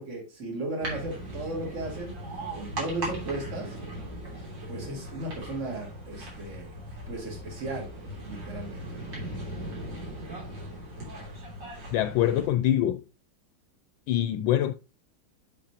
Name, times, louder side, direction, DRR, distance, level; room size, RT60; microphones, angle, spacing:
voice 1, 0.0-2.2 2.5-3.8 4.7-6.7 7.1-9.2, right 2 dB, 40° right, 2.7 m, -36 dB
sound 1, 0.8-12.5, right 1 dB, 70° right, 3.8 m, -39 dB
voice 2, 11.9-13.0 14.1-14.7, left 12 dB, 80° left, 1.3 m, -24 dB
7.5 x 7.1 x 2.9 m
omnidirectional pair, 2.1 m